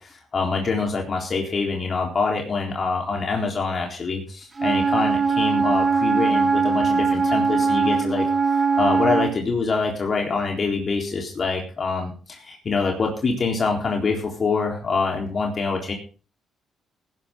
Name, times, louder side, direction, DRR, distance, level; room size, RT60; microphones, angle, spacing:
voice 1, 0.0-15.9, left 4 dB, 40° left, 0 dB, 3.9 m, -25 dB
Wind instrument woodwind instrument, 4.6-9.4, right 5 dB, 30° right, 2.8 m, -21 dB
18.0 x 11.0 x 3.8 m, 0.36 s
cardioid pair, 90°, 0 cm